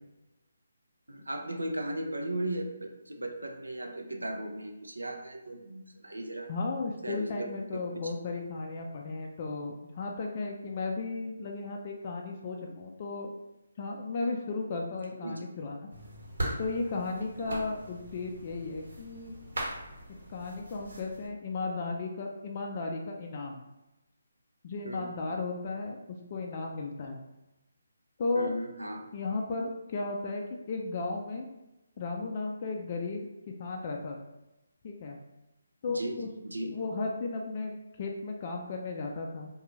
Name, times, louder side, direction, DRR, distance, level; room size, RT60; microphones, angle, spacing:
voice 1, 1.1-6.5 7.0-7.7 8.0-8.1 15.2-15.4 17.5-17.7 24.8-25.2 28.3-29.1 35.9-36.2 36.4-36.8, right 1 dB, 90° right, 3 dB, 0.4 m, -36 dB
voice 2, 6.5-13.3 13.8-15.9 16.6-19.3 20.3-23.6 24.6-27.2 28.2-28.5 29.1-31.5 32.0-34.2 34.8-35.2 35.8-36.3 36.7-39.5, left 3 dB, 40° left, 1 dB, 0.3 m, -35 dB
sound 1, 15.9-21.3, right 1 dB, 70° right, 1.1 m, -40 dB
2.4 x 2.3 x 3.0 m, 0.97 s
figure-of-eight pair, 150°, 0 cm